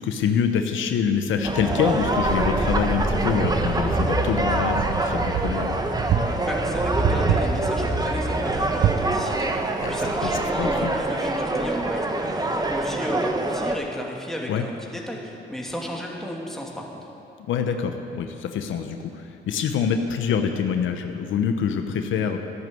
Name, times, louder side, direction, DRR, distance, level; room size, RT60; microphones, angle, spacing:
voice 1, 0.0-5.7 9.8-10.3 10.6-11.0 14.5-14.6 17.5-22.4, left 7 dB, 80° left, 6 dB, 1.0 m, -25 dB
sound 1, 1.4-13.8, right 2 dB, 20° right, 1.3 m, -25 dB
Wind, 1.8-10.7, right 11 dB, 65° right, 0.5 m, -30 dB
voice 2, 6.5-17.0, equal, ahead, -2 dB, 2.7 m, -34 dB
14.5 x 10.5 x 7.9 m, 2.8 s
cardioid pair, 90°, 20 cm